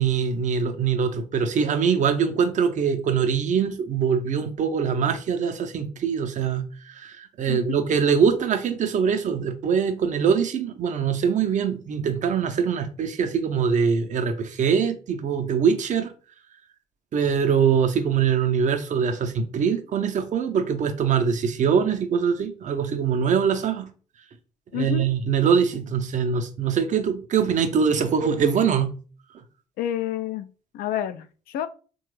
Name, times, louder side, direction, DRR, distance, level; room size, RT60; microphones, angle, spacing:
voice 1, 0.0-16.1 17.1-23.9 24.7-29.0, right 6 dB, 50° right, 0.6 m, -23 dB
voice 2, 7.5-7.8 24.7-25.1 29.8-30.5 30.7-31.7, left 10 dB, 70° left, 0.4 m, -29 dB
3.2 x 2.3 x 3.1 m
supercardioid pair, 60°, 16 cm